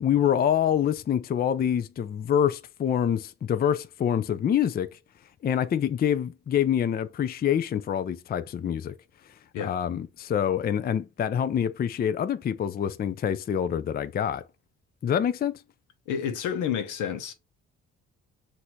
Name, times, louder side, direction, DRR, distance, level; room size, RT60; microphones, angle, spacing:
voice 1, 0.0-4.9 5.4-8.9 9.6-14.4 15.0-15.5, left 9 dB, 30° left, 0.4 m, -26 dB
voice 2, 16.1-17.3, left 8 dB, 85° left, 0.9 m, -30 dB
6.0 x 2.6 x 2.8 m
cardioid pair, 90°, 30 cm